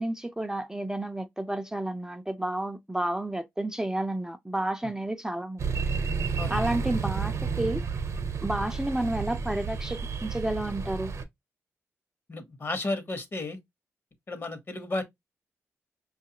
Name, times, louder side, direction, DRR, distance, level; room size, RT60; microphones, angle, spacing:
voice 1, 0.0-5.6 6.5-7.8 8.4-11.1, right 1 dB, 10° right, 0.4 m, -31 dB
sound 1, 5.6-11.2, right 5 dB, 60° right, 0.6 m, -31 dB
voice 2, 12.3-13.6 14.3-15.0, left 2 dB, 45° left, 1.0 m, -33 dB
5.3 x 2.4 x 2.8 m
cardioid pair, 70°, 6 cm